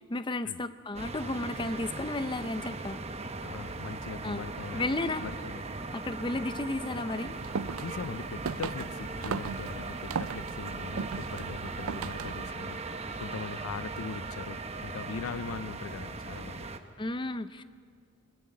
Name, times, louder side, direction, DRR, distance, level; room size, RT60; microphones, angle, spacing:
voice 1, 0.0-3.0 4.2-4.4 4.7-5.2 5.9-7.3 17.0-17.6, left 2 dB, 20° left, 12 dB, 0.6 m, -33 dB
sound 1, 0.9-16.8, right 3 dB, 30° right, 0.9 m, -39 dB
voice 2, 3.4-5.6 7.8-16.7, left 5 dB, 70° left, 17 dB, 0.5 m, -41 dB
sound 2, 7.3-12.5, right 5 dB, 75° right, 0.5 m, -37 dB
21.5 x 14.0 x 9.5 m, 2.1 s
head